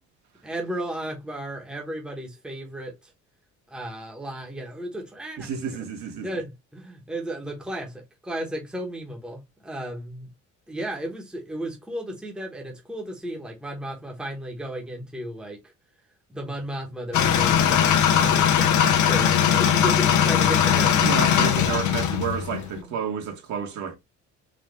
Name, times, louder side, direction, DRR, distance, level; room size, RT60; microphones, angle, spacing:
voice 1, 0.4-2.9 3.7-5.5 5.7-5.8 6.2-10.3 10.7-15.6 16.3-21.1 22.7-23.0, right 1 dB, 5° right, 1.1 m, -34 dB
voice 2, 5.4-6.3 21.0-24.0, right 7 dB, 65° right, 1.6 m, -30 dB
sound 1, 17.1-22.8, left 9 dB, 70° left, 0.8 m, -20 dB
4.1 x 2.5 x 3.2 m
cardioid pair, 135°, 31 cm